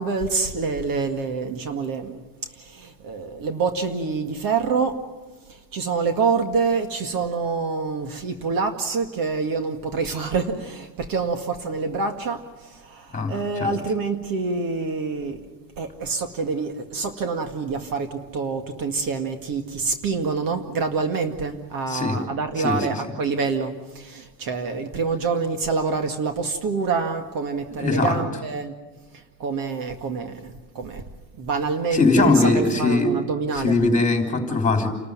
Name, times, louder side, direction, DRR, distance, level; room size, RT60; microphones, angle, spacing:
voice 1, 0.0-2.2 2.6-5.0 5.5-15.4 15.8-28.7 29.4-31.0 31.4-32.4 32.8-33.8, right 4 dB, 45° right, 6 dB, 2.1 m, -26 dB
voice 2, 13.1-13.7 21.9-22.2 22.6-23.1 27.7-28.2 31.9-33.2 33.5-34.9, left 3 dB, 15° left, 4 dB, 3.4 m, -21 dB
28.5 x 13.5 x 9.6 m, 1.2 s
cardioid pair, 140°, 47 cm